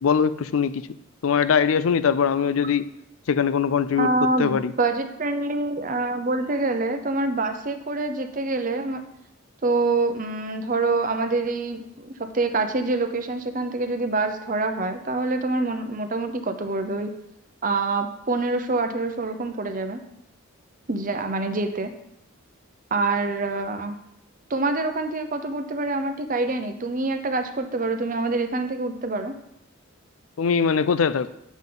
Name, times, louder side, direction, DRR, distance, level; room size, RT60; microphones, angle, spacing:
voice 1, 0.0-0.9 1.2-2.9 3.3-4.1 4.4-4.7 30.4-31.3, left 6 dB, 75° left, 14 dB, 0.4 m, -21 dB
voice 2, 4.0-9.0 9.6-17.1 17.6-20.0 20.9-21.9 22.9-24.0 24.5-29.3, right 3 dB, 40° right, 8 dB, 0.7 m, -26 dB
9.3 x 7.2 x 3.9 m, 0.80 s
head